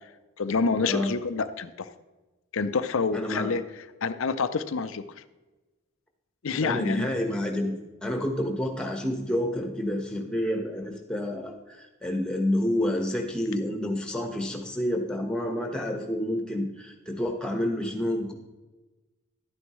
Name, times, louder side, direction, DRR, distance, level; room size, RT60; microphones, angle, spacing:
voice 1, 0.4-1.9 2.5-5.0 6.4-7.2, left 4 dB, 65° left, 11 dB, 0.5 m, -28 dB
voice 2, 3.1-3.6 6.6-18.3, left 1 dB, 5° left, 2 dB, 1.1 m, -29 dB
12.0 x 9.6 x 3.1 m, 1.2 s
head